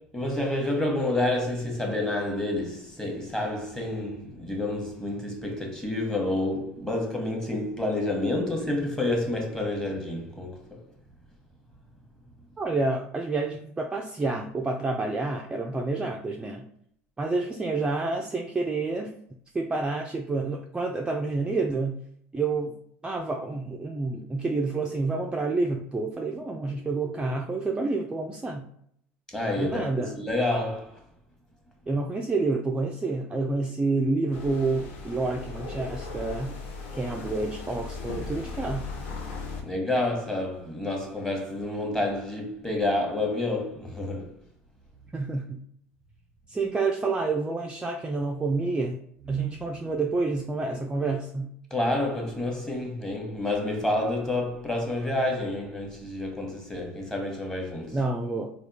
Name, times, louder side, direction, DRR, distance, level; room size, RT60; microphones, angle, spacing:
voice 1, 0.1-10.8 29.3-30.9 39.6-44.3 49.3-49.5 51.7-58.0, left 1 dB, 10° left, 1.0 m, -29 dB
voice 2, 12.6-16.6 17.2-19.1 19.5-22.0 22.3-22.7 23.0-28.7 29.6-30.1 31.9-36.6 36.9-38.9 45.1-45.6 46.5-49.0 49.3-51.5 57.9-58.5, right 3 dB, 15° right, 0.3 m, -28 dB
sound 1, 34.3-39.6, left 4 dB, 85° left, 0.6 m, -37 dB
3.4 x 2.4 x 2.7 m
hypercardioid pair, 85°, 7 cm